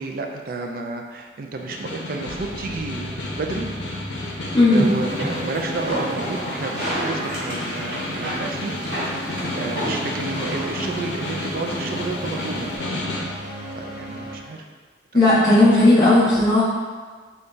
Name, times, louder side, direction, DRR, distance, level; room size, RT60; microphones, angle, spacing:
voice 1, 0.0-3.7 4.4-8.8 9.3-12.8 13.7-14.6 15.3-15.7 16.1-16.4, right 3 dB, 55° right, 3 dB, 0.4 m, -31 dB
Snare drum, 1.5-13.4, left 1 dB, 80° left, 0.6 m, -32 dB
sound 1, 2.3-14.4, equal, 20° right, 1.3 m, -35 dB
voice 2, 4.5-4.9 15.1-16.6, left 2 dB, 20° left, -10 dB, 0.6 m, -15 dB
sound 2, 4.7-12.8, right 1 dB, 80° right, 1.1 m, -32 dB
3.8 x 2.3 x 3.7 m, 1.5 s
head